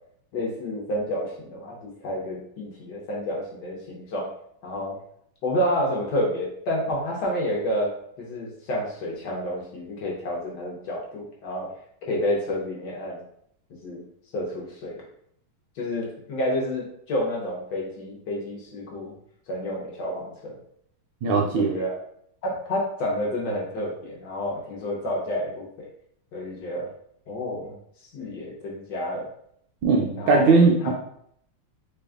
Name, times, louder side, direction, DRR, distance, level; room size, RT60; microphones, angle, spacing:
voice 1, 0.3-4.3 4.6-5.0 5.4-11.7 12.0-13.2 13.8-14.0 14.3-15.0 15.8-19.1 19.5-20.5 21.6-21.9 22.4-25.9 26.3-26.9 27.3-27.8 28.1-29.3 30.2-30.5 30.8-30.9, equal, 65° left, -3 dB, 1.3 m, -29 dB
voice 2, 21.2-21.8 29.8-30.9, right 4 dB, 75° right, -1 dB, 1.0 m, -19 dB
3.4 x 2.3 x 3.5 m, 0.69 s
omnidirectional pair, 2.2 m